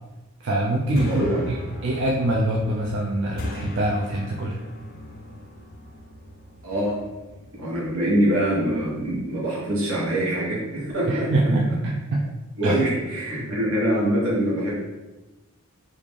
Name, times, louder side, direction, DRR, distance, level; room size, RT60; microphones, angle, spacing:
voice 1, 0.4-1.5 1.8-4.6 11.1-12.3 12.6-12.9, right 1 dB, 55° right, -2 dB, 0.4 m, -24 dB
sound 1, 0.8-9.2, left 1 dB, 45° left, 0.4 m, -39 dB
voice 2, 1.0-1.4 6.6-7.0 7.5-11.3 12.6-14.7, right 1 dB, 80° right, -5 dB, 1.2 m, -24 dB
3.2 x 2.4 x 3.5 m, 1.1 s
head